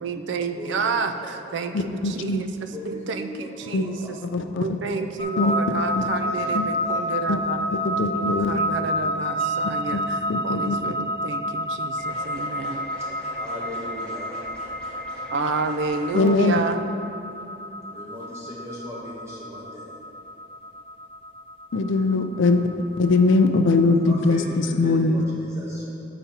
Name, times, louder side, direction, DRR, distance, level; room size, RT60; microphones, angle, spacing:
voice 1, 0.0-1.7 2.0-4.2 4.6-7.7 8.1-12.9 15.3-16.9, right 4 dB, 65° right, 8 dB, 0.4 m, -30 dB
voice 2, 1.2-2.0 2.7-4.2 4.8-5.0 6.2-6.5 6.8-7.0 12.6-14.5 14.8-14.9 15.2-15.3 17.9-20.0 24.0-25.9, equal, 15° right, -6 dB, 0.8 m, -39 dB
voice 3, 1.7-2.4 3.7-3.9 4.3-4.8 5.4-5.5 5.9-6.0 6.5-6.6 7.3-7.4 7.8-8.5 9.9-10.0 10.3-10.9 16.1-16.6 21.7-22.6 23.0-25.2, left 3 dB, 70° left, 7 dB, 0.4 m, -21 dB
sound 1, 5.2-24.3, equal, 30° left, 0.6 m, -30 dB
sound 2, 12.0-16.4, left 1 dB, 5° left, 1.1 m, -42 dB
6.9 x 5.0 x 4.3 m, 2.8 s
head